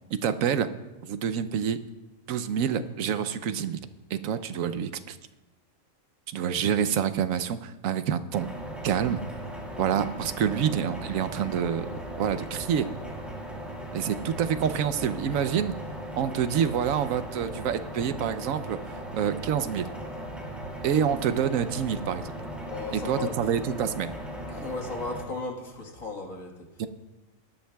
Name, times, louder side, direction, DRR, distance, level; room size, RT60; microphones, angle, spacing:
voice 1, 0.1-0.7 1.0-1.8 2.3-3.8 4.1-5.2 6.3-8.5 8.8-9.2 9.8-11.9 12.2-12.9 13.9-15.7 16.1-18.8 19.1-19.9 20.8-22.3 22.9-24.1 26.8-26.9, right 8 dB, 80° right, 11 dB, 1.1 m, -27 dB
sound 1, 8.3-25.2, right 1 dB, ahead, 2.4 m, -38 dB
voice 2, 22.6-23.4 24.5-26.7, left 3 dB, 80° left, 1 dB, 2.0 m, -35 dB
19.5 x 11.5 x 2.3 m, 1.1 s
omnidirectional pair, 1.4 m